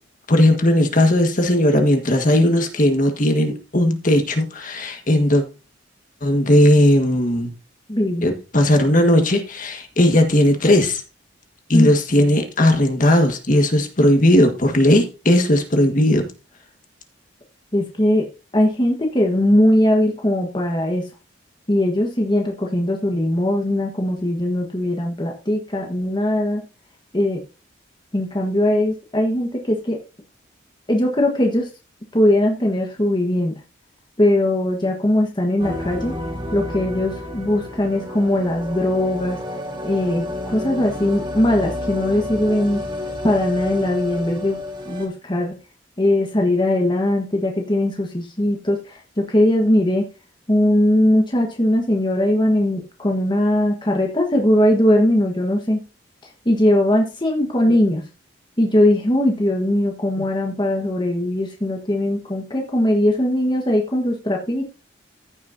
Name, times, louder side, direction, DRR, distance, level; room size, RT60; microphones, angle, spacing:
voice 1, 0.3-5.4 6.2-7.5 8.2-11.0 11.7-16.3 57.7-57.8, left 1 dB, 45° left, 1.6 m, -17 dB
voice 2, 7.9-8.3 11.7-11.9 17.7-18.2 18.5-21.0 21.7-26.6 27.1-27.4 28.1-30.0 30.9-31.7 32.1-33.6 34.2-36.1 36.5-39.4 39.8-42.8 43.2-44.6 44.8-45.5 46.0-50.0 50.5-55.8 56.4-58.0 58.6-64.7, left 1 dB, 25° left, 1.4 m, -20 dB
sound 1, 35.6-45.1, left 1 dB, 25° right, 1.8 m, -30 dB
14.5 x 6.5 x 2.7 m
head